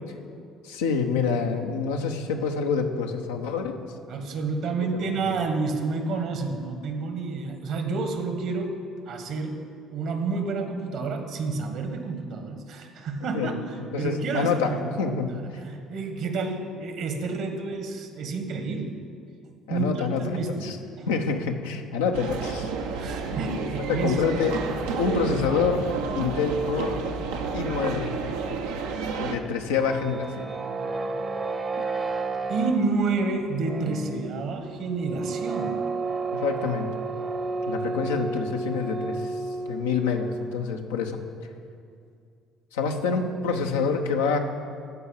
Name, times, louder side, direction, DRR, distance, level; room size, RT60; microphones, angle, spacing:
voice 1, 0.6-3.9 4.8-5.2 13.3-13.6 13.9-15.4 19.7-20.8 21.1-22.7 23.9-24.5 25.0-25.9 26.1-27.0 27.5-28.2 29.2-30.5 31.8-31.9 36.3-36.9 37.7-39.4 39.7-41.2 42.7-44.4, left 5 dB, 90° left, 3 dB, 0.8 m, -27 dB
voice 2, 4.1-8.7 9.1-9.6 9.9-15.0 15.3-19.0 19.7-21.1 23.0-24.2 32.5-35.8, right 4 dB, 65° right, 5 dB, 1.6 m, -29 dB
sound 1, 22.1-29.3, right 4 dB, 85° right, 0.8 m, -30 dB
sound 2, 29.5-40.8, right 3 dB, 35° right, 0.9 m, -32 dB
13.5 x 4.7 x 8.9 m, 2.4 s
hypercardioid pair, 60°, 0 cm